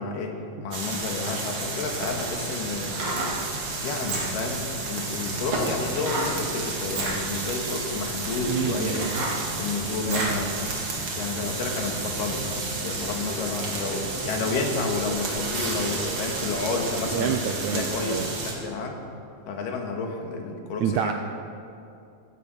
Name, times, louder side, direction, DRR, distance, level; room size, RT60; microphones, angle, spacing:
voice 1, 0.0-3.0 3.8-9.1 9.6-10.5 11.1-17.4 17.7-19.0 19.5-21.1, left 4 dB, 80° left, 2 dB, 3.1 m, -31 dB
sound 1, 0.7-18.5, right 3 dB, 45° right, 2.5 m, -31 dB
sound 2, 2.9-3.4 4.0-4.5 6.0-6.4 6.8-7.2 7.9-8.0 8.5-10.4 10.9-11.0, right 2 dB, 60° right, 4.0 m, -31 dB
voice 2, 8.5-9.1 10.0-10.3 17.1-18.3 20.8-21.1, right 8 dB, 85° right, 6 dB, 1.7 m, -28 dB
sound 3, 13.1-18.5, equal, 5° right, 3.5 m, -39 dB
15.5 x 15.5 x 4.3 m, 2.5 s
omnidirectional pair, 3.9 m